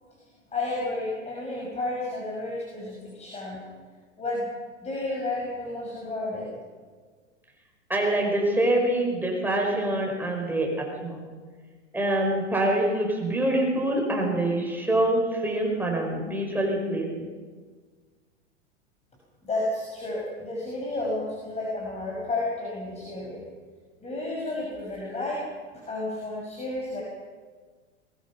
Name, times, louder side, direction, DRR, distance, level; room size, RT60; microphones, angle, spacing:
voice 1, 0.5-3.6 4.2-4.5 4.8-6.5 19.5-23.4 24.0-25.4 25.9-27.0, left 2 dB, 20° left, -3 dB, 6.2 m, -31 dB
voice 2, 7.9-11.2 11.9-17.3, right 1 dB, 5° right, 0 dB, 5.4 m, -25 dB
22.5 x 21.0 x 5.9 m, 1.5 s
hypercardioid pair, 100°, 36 cm